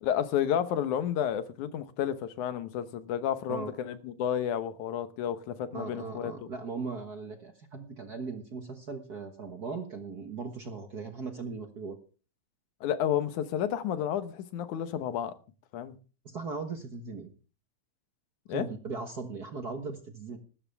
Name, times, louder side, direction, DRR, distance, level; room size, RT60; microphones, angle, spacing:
voice 1, 0.0-6.5 12.8-15.3 15.7-16.0 18.5-18.7, left 9 dB, 85° left, 2.6 m, -31 dB
voice 2, 5.7-12.0 16.2-17.3 18.5-20.4, right 4 dB, 45° right, 1.4 m, -38 dB
15.5 x 13.5 x 3.5 m
omnidirectional pair, 3.4 m